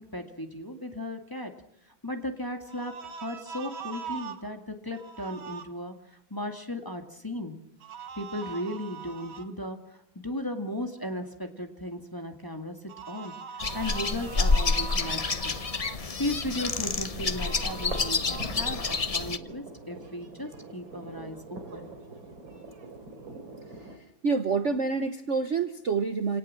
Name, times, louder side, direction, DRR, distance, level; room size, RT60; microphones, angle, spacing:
voice 1, 0.0-1.5 2.0-5.9 6.3-7.6 8.2-12.8 13.1-13.4 13.7-15.6 16.2-21.9, left 1 dB, 10° left, 4 dB, 2.0 m, -36 dB
sound 1, 2.7-4.4 4.9-5.6 7.8-9.5 12.9-16.0 17.3-18.4, right 6 dB, 90° right, 2.3 m, -41 dB
sound 2, 13.6-19.4, left 4 dB, 65° left, 0.3 m, -28 dB
sound 3, 16.7-24.0, right 3 dB, 75° right, 3.8 m, -44 dB
voice 2, 23.7-26.4, right 4 dB, 45° right, 9 dB, 1.1 m, -28 dB
27.5 x 18.5 x 7.6 m, 0.79 s
omnidirectional pair, 2.2 m